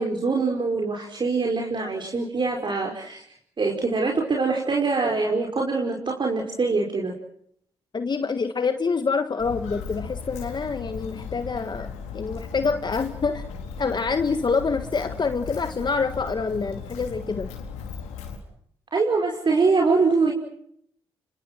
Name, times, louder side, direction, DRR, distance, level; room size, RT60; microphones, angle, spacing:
voice 1, 0.0-3.2 3.6-7.1 18.9-20.3, right 4 dB, 40° right, 0 dB, 5.4 m, -23 dB
voice 2, 7.9-13.4 13.8-17.5, left 4 dB, 40° left, 9 dB, 1.6 m, -26 dB
Walk footsteps, 9.4-18.4, left 6 dB, 80° left, 4.4 m, -37 dB
29.0 x 25.0 x 6.2 m, 0.70 s
hypercardioid pair, 50°, 12 cm